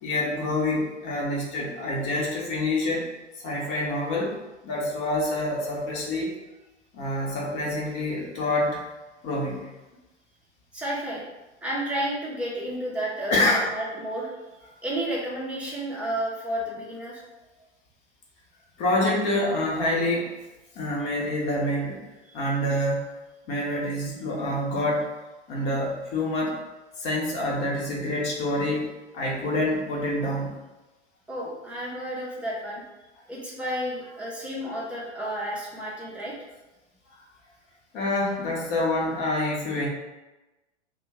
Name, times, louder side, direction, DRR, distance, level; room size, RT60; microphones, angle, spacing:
voice 1, 0.0-3.1 3.4-4.4 4.6-6.3 6.9-8.8 9.2-9.7 13.3-13.7 18.8-20.4 20.7-22.0 22.3-23.1 23.5-25.1 25.5-26.6 27.0-30.5 37.9-39.9, left 1 dB, 35° left, -3 dB, 1.1 m, -27 dB
voice 2, 10.7-11.2 11.6-17.2 22.3-22.4 31.3-32.8 33.3-36.3, right 1 dB, 5° right, -6 dB, 0.8 m, -32 dB
3.0 x 2.4 x 4.3 m, 1.1 s
figure-of-eight pair, 105°, 36 cm